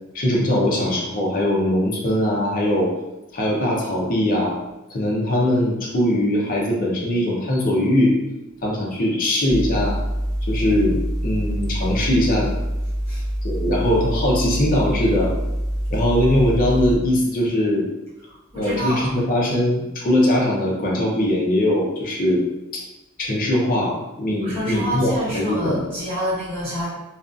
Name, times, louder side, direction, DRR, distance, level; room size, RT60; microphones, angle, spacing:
voice 1, 0.1-2.9 3.3-4.6 4.9-8.1 8.6-10.0 10.5-12.5 13.4-15.3 15.9-17.9 18.5-22.4 22.7-22.8 23.2-25.8, left 1 dB, 45° left, -3 dB, 0.6 m, -21 dB
sound 1, 9.5-17.0, equal, 15° left, 0.9 m, -25 dB
voice 2, 18.3-19.1 24.4-26.9, equal, 25° right, -12 dB, 1.2 m, -27 dB
2.5 x 2.3 x 2.4 m, 0.97 s
head